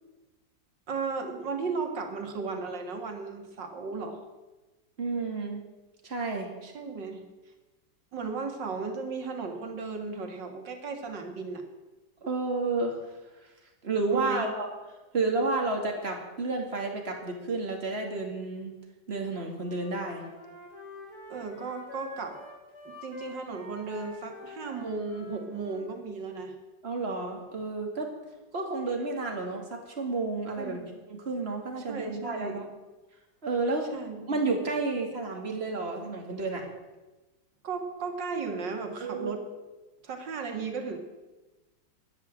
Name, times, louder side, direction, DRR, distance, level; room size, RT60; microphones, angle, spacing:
voice 1, 0.9-4.2 6.6-7.2 8.1-11.6 14.1-14.5 21.3-22.4 22.9-26.5 30.6-31.0 31.9-32.6 33.9-34.3 37.6-39.5 40.0-41.0, right 4 dB, 75° right, 5 dB, 2.6 m, -35 dB
voice 2, 5.0-5.6 6.0-6.5 12.2-13.2 13.8-14.7 15.1-18.7 19.1-20.2 26.8-28.1 28.5-30.8 31.1-32.6 33.4-33.9 34.3-36.7 39.0-39.3, right 3 dB, 35° right, 2 dB, 2.6 m, -31 dB
Wind instrument woodwind instrument, 19.6-25.9, left 2 dB, 55° left, 3.8 m, -46 dB
14.5 x 10.5 x 7.7 m, 1.1 s
omnidirectional pair, 2.0 m